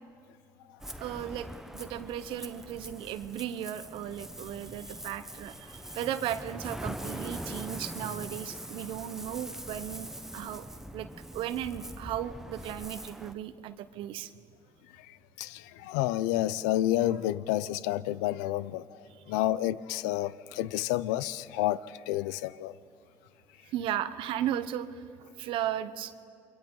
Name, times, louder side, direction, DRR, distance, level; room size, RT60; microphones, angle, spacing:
Ocean, 0.8-13.3, right 1 dB, 5° right, 1.0 m, -42 dB
voice 1, 1.0-1.5 1.7-10.7 10.9-11.1 11.3-14.3 19.1-19.2 23.6-26.1, right 11 dB, 70° right, 0.9 m, -36 dB
voice 2, 15.0-18.9 19.3-22.7, left 14 dB, 90° left, 0.5 m, -30 dB
29.0 x 23.5 x 3.9 m
supercardioid pair, 75°, 9 cm